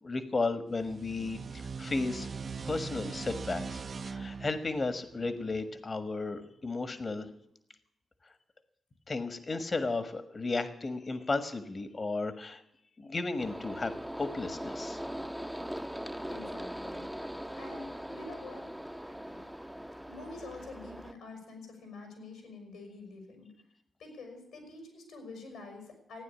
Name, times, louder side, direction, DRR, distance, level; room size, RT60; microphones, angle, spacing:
voice 1, 0.0-2.3 2.6-7.3 9.1-12.6 13.0-15.0, left 3 dB, 45° left, 11 dB, 1.5 m, -34 dB
sound 1, 0.7-6.0, right 5 dB, 55° right, 0.7 m, -41 dB
sound 2, 13.4-21.1, equal, 5° right, 0.7 m, -40 dB
voice 2, 16.3-19.5 20.0-23.5 24.0-26.2, left 3 dB, 85° left, 4 dB, 5.4 m, -47 dB
15.0 x 9.6 x 8.3 m, 0.79 s
supercardioid pair, 40°, 0 cm